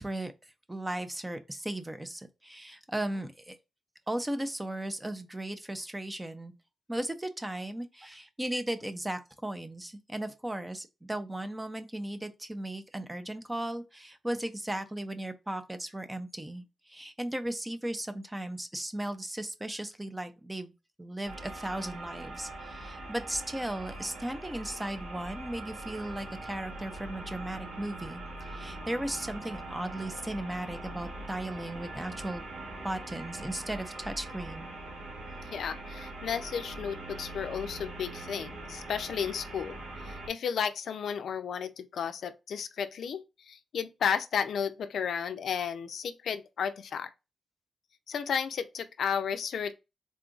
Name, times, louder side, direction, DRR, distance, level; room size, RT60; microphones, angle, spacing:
voice 1, 0.0-3.6 4.1-6.5 6.9-20.7 21.0-32.4 32.8-34.7, right 1 dB, 10° right, 0.5 m, -36 dB
sound 1, 21.2-40.3, right 2 dB, 85° right, 1.6 m, -42 dB
voice 2, 35.5-39.8 40.3-47.1 48.1-49.7, left 7 dB, 85° left, 0.4 m, -33 dB
3.7 x 2.4 x 3.8 m
wide cardioid pair, 125°, 0 cm